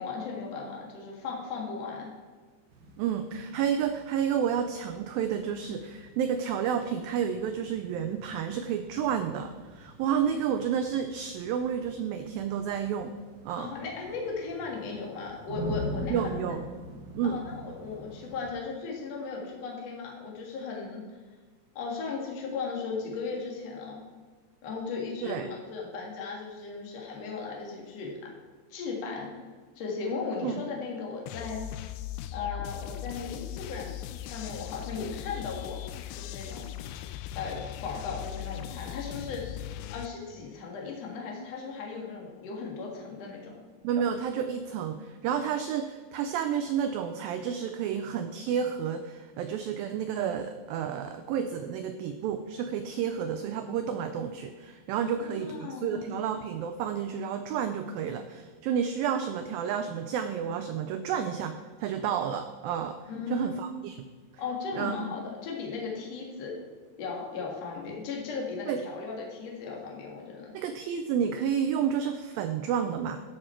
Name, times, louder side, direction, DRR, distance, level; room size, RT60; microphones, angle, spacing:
voice 1, 0.0-2.1 13.6-16.3 17.2-21.0 21.8-24.0 24.6-28.2 28.7-29.4 29.8-31.7 32.3-34.0 34.2-35.8 36.1-36.7 37.3-39.6 39.9-43.6 55.0-56.0 63.1-63.5 64.4-66.6 67.0-70.5, left 4 dB, 50° left, -1 dB, 2.4 m, -36 dB
sound 1, 2.7-18.5, left 1 dB, 70° right, 2.8 m, -44 dB
voice 2, 3.0-13.2 13.5-13.7 16.1-16.6 17.2-17.4 25.2-25.5 30.4-30.6 43.8-63.0 63.3-64.1 64.8-65.1 68.7-68.8 70.5-73.2, right 8 dB, 90° right, 8 dB, 2.0 m, -30 dB
sound 2, 31.3-40.1, left 12 dB, 85° left, 2.4 m, -39 dB
13.5 x 6.3 x 4.4 m, 1.4 s
omnidirectional pair, 4.7 m